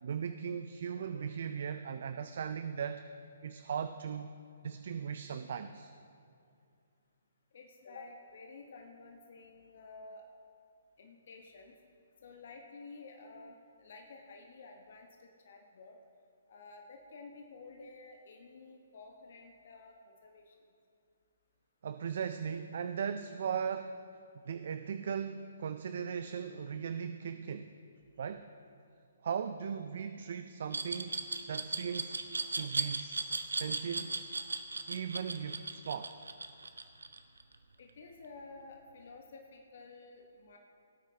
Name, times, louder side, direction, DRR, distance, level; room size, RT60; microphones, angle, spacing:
voice 1, 0.0-3.0 3.4-4.3 4.6-5.9 21.8-24.0 24.3-27.7 28.2-28.5 29.2-31.2 31.5-32.2 32.5-34.2 34.9-36.2, right 7 dB, 55° right, 9 dB, 0.4 m, -38 dB
voice 2, 7.5-10.3 11.0-11.8 12.2-16.0 16.5-20.6 37.8-40.6, left 3 dB, 55° left, 2 dB, 1.0 m, -52 dB
Glass, 30.7-37.5, right 3 dB, 80° right, 0.7 m, -36 dB
17.5 x 9.0 x 2.9 m, 2.4 s
figure-of-eight pair, 135°, 0 cm